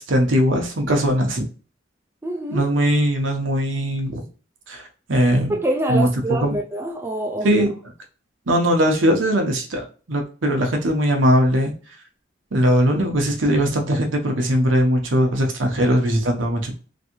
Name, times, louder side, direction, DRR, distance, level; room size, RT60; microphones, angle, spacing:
voice 1, 0.0-1.4 2.5-4.2 4.7-5.5 5.9-6.1 6.4-6.6 7.4-7.7 8.5-11.7 12.5-16.7, equal, 70° right, 0.9 m, -20 dB
voice 2, 2.2-2.7 5.5-7.6, right 2 dB, 10° right, 0.4 m, -25 dB
3.1 x 2.7 x 2.8 m
head